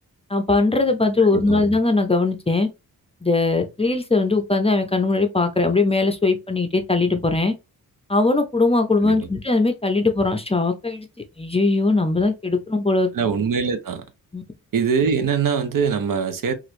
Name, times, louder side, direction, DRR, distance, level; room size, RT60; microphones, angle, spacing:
voice 1, 0.3-2.7 3.2-7.5 8.1-11.1 11.4-13.1 14.3-14.4, left 3 dB, 15° left, 0.5 m, -20 dB
voice 2, 1.2-1.6 9.0-9.3 13.1-14.0 14.7-16.5, right 6 dB, 70° right, 0.6 m, -23 dB
3.0 x 2.5 x 2.9 m
wide cardioid pair, 110°, 35 cm